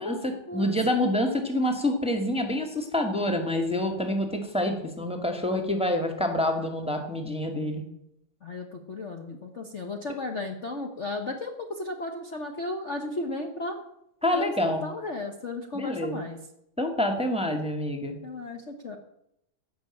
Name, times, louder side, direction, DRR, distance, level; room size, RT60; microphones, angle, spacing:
voice 1, 0.0-7.8 14.2-14.8 15.7-16.2 16.8-18.1, left 1 dB, 5° right, 4 dB, 1.6 m, -27 dB
voice 2, 8.4-13.7 14.3-14.5 14.8-16.4 18.2-19.0, left 2 dB, 40° left, 3 dB, 1.3 m, -34 dB
16.0 x 6.3 x 8.8 m, 0.79 s
omnidirectional pair, 2.3 m